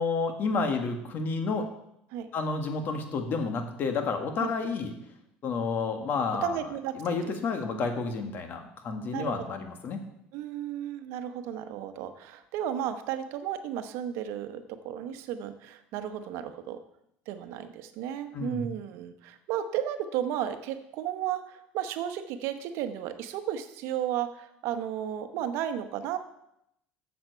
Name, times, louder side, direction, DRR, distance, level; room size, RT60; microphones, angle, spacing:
voice 1, 0.0-1.7 2.3-4.9 5.4-6.6 7.0-10.0 18.3-18.7, left 4 dB, 45° left, 6 dB, 1.7 m, -30 dB
voice 2, 6.4-6.9 9.1-9.3 10.3-16.8 17.3-26.2, right 10 dB, 70° right, 9 dB, 1.0 m, -33 dB
7.8 x 7.3 x 6.8 m, 0.78 s
supercardioid pair, 110°, 5 cm